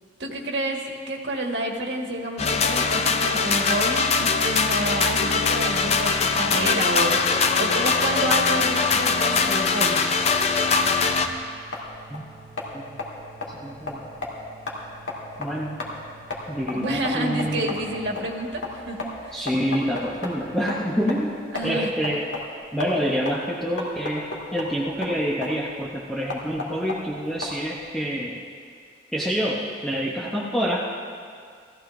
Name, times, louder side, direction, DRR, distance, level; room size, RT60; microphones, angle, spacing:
voice 1, 0.2-7.2 7.6-10.0 16.7-19.3 21.5-21.9, right 1 dB, 75° right, 0 dB, 1.5 m, -29 dB
sound 1, 2.4-11.3, left 4 dB, 35° left, 0.5 m, -22 dB
sound 2, 5.9-18.1, right 4 dB, 55° left, 2.8 m, -49 dB
sound 3, 11.6-27.9, left 2 dB, 90° left, 2.0 m, -36 dB
voice 2, 13.5-14.0 15.4-15.8 16.5-17.7 19.3-21.3 21.6-22.3 22.7-28.4 29.1-30.9, equal, ahead, -5 dB, 0.8 m, -27 dB
17.5 x 14.5 x 2.6 m, 2.2 s
head